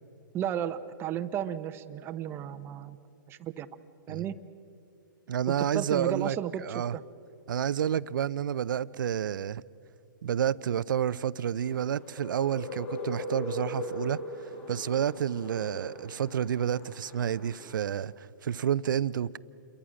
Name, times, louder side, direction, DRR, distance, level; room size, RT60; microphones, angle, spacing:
voice 1, 0.3-3.0 3.3-3.7 4.1-4.3 5.5-7.0, right 9 dB, 20° right, 0.8 m, -34 dB
voice 2, 5.3-6.4 6.6-7.0 7.5-9.6 10.2-14.2 14.7-19.4, right 9 dB, 70° right, 0.6 m, -29 dB
sound 1, 11.5-17.7, left 2 dB, 35° left, 6.4 m, -40 dB
28.5 x 23.0 x 6.4 m
hypercardioid pair, 135°, 11 cm